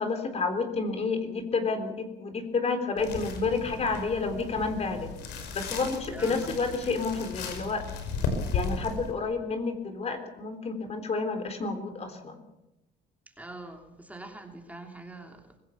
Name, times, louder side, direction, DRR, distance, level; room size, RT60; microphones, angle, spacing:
voice 1, 0.0-5.1 5.5-7.8 8.5-12.4, left 4 dB, 40° left, 7 dB, 3.7 m, -30 dB
sound 1, 3.0-9.1, left 4 dB, 90° left, 5.2 m, -35 dB
voice 2, 6.1-6.5 13.4-15.4, right 2 dB, 10° right, 3 dB, 3.0 m, -43 dB
24.5 x 17.0 x 7.2 m, 0.93 s
cardioid pair, 110°, 17 cm